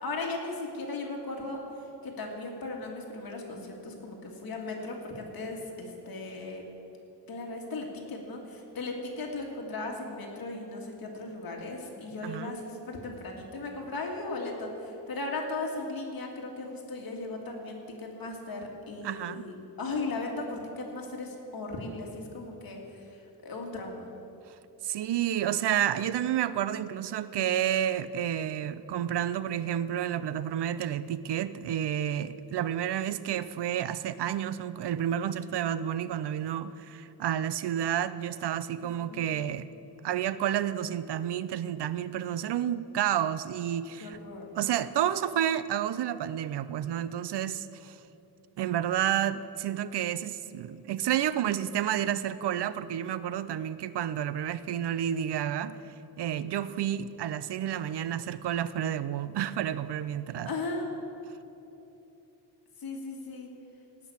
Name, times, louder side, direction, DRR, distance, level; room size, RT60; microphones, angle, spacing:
voice 1, 0.0-1.6 2.0-6.7 7.3-23.1 23.4-24.1 38.8-39.3 44.0-44.6 60.5-60.9 62.8-63.5, left 3 dB, 55° left, 0 dB, 2.1 m, -37 dB
voice 2, 12.2-12.6 19.0-19.5 24.8-39.7 40.0-44.2 44.5-48.0 48.6-55.8 56.2-60.5, right 10 dB, 65° right, 15 dB, 0.6 m, -30 dB
17.5 x 6.1 x 8.5 m, 3.0 s
wide cardioid pair, 165°, 43 cm